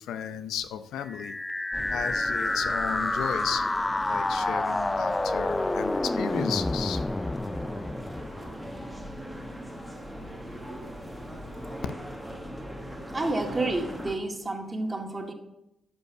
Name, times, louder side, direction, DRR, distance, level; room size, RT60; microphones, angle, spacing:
voice 1, 0.0-1.3 1.9-3.6 4.1-7.0, left 9 dB, 80° left, 10 dB, 0.6 m, -34 dB
sound 1, 1.0-9.0, left 2 dB, 15° left, 0.4 m, -29 dB
sound 2, 1.7-14.2, equal, ahead, 1.6 m, -40 dB
voice 2, 13.1-15.3, right 2 dB, 20° right, 3 dB, 1.9 m, -30 dB
11.5 x 5.4 x 8.0 m, 0.89 s
cardioid pair, 90°, 0 cm